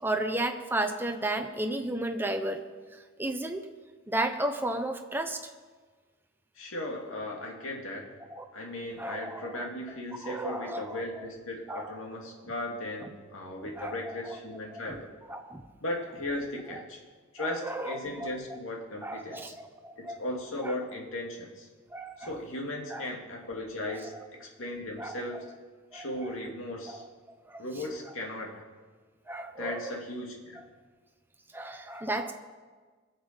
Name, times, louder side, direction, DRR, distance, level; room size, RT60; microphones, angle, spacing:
voice 1, 0.0-2.6 3.2-3.6 4.1-5.4 8.3-8.5 9.0-9.7 10.2-11.3 11.7-12.0 13.8-14.4 14.7-15.0 15.3-15.6 16.7-16.8 17.4-18.6 19.0-20.2 20.6-20.7 21.9-22.3 22.9-23.1 23.9-24.2 25.0-25.4 25.9-26.3 26.9-27.0 27.5-27.6 29.3-30.0 30.6-30.7 31.5-32.3, right 1 dB, 10° right, 5 dB, 0.8 m, -34 dB
voice 2, 6.6-8.1 8.5-15.1 15.8-17.0 17.3-19.6 20.0-21.7 22.2-24.1 24.4-25.4 25.9-27.0 27.6-28.7 29.6-30.6, left 1 dB, 70° left, 0 dB, 2.6 m, -37 dB
21.5 x 7.3 x 5.3 m, 1.4 s
head